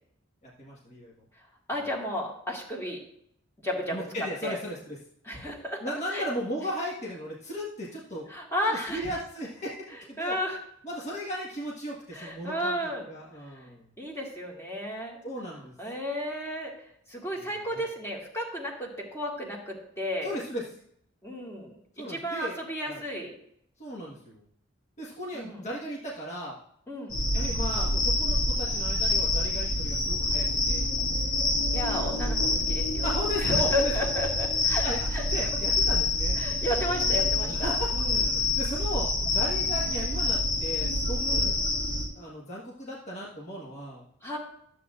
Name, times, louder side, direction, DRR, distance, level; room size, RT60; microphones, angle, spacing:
voice 1, 0.4-1.1 3.9-5.0 5.8-8.3 8.7-10.4 10.8-12.8 13.1-13.8 15.2-15.8 17.4-17.8 20.2-20.6 21.9-22.6 22.9-23.0 23.8-24.4 25.0-26.6 27.3-30.9 32.2-32.7 33.0-33.9 34.8-36.4 37.2-41.5 42.1-44.0, equal, 35° left, -4 dB, 1.5 m, -36 dB
voice 2, 1.7-3.0 3.6-4.0 4.4-4.6 5.3-5.8 6.1-6.3 8.3-9.0 9.9-10.6 12.1-13.1 13.6-13.7 14.0-15.2 15.8-16.7 17.1-20.4 21.2-21.7 22.1-23.3 25.3-25.6 26.9-27.2 31.7-33.2 33.4-34.9 35.1-35.2 36.4-38.2 41.2-41.5 44.2-44.4, equal, 15° left, -1 dB, 1.9 m, -33 dB
sound 1, 27.1-42.1, left 2 dB, 70° left, 2.6 m, -27 dB
12.5 x 7.8 x 2.5 m, 0.69 s
head